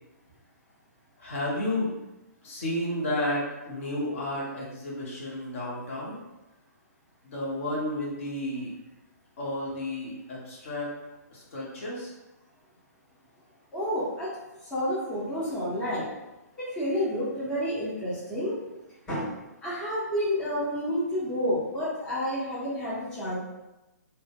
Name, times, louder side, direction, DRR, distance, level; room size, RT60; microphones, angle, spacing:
voice 1, 1.2-1.9 2.4-6.2 7.3-8.7 9.4-10.9 11.3-12.1, left 1 dB, 45° left, -4 dB, 0.8 m, -32 dB
voice 2, 13.7-14.3 14.7-16.1 16.6-18.5 19.1-19.3 19.6-23.4, equal, 10° left, -9 dB, 0.6 m, -29 dB
2.1 x 2.1 x 3.3 m, 0.99 s
figure-of-eight pair, 125°, 9 cm